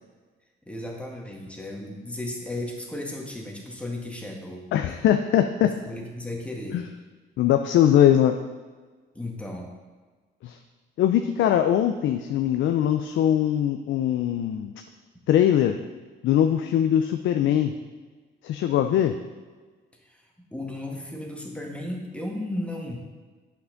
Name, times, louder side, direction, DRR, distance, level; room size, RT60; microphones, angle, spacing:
voice 1, 0.6-4.6 5.6-6.8 9.1-9.7 20.5-23.0, left 1 dB, 5° left, 0 dB, 1.6 m, -34 dB
voice 2, 4.7-5.7 6.7-6.8 7.4-8.4 10.4-10.6 11.0-14.7 15.3-15.8 16.2-17.7 18.4-19.1, left 10 dB, 75° left, 6 dB, 0.5 m, -21 dB
8.4 x 5.7 x 3.9 m, 1.4 s
cardioid pair, 90°, 20 cm